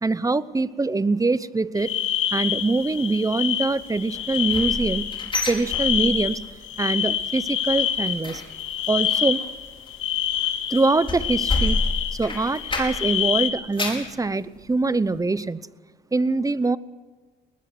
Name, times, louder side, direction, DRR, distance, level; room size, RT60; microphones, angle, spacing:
voice 1, 0.0-1.9 2.3-5.1 5.4-6.4 6.8-8.4 8.9-9.4 10.7-11.8 12.1-15.6 16.1-16.8, right 3 dB, 15° right, 17 dB, 0.8 m, -23 dB
sound 1, 1.8-13.5, left 10 dB, 80° left, 2.2 m, -27 dB
sound 2, 4.1-6.5 6.8-7.1 7.4-13.2 13.5-14.1 14.6-14.7 15.2-15.3, left 2 dB, 25° left, 5.2 m, -30 dB
21.0 x 20.0 x 6.2 m, 1.4 s
cardioid pair, 90°, 20 cm